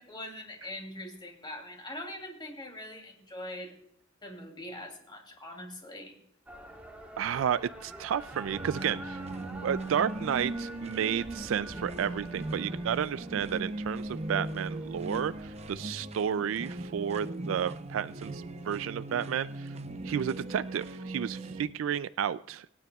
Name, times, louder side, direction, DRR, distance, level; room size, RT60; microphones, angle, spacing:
voice 1, 0.0-3.7 4.2-6.2, left 1 dB, 25° left, 2 dB, 2.8 m, -42 dB
sound 1, 6.5-15.8, right 1 dB, 10° right, 1.5 m, -48 dB
voice 2, 7.2-19.7 20.0-22.7, right 8 dB, 75° right, 15 dB, 0.3 m, -32 dB
sound 2, 8.3-21.7, right 2 dB, 35° right, 0.7 m, -39 dB
25.5 x 9.6 x 2.3 m, 0.76 s
head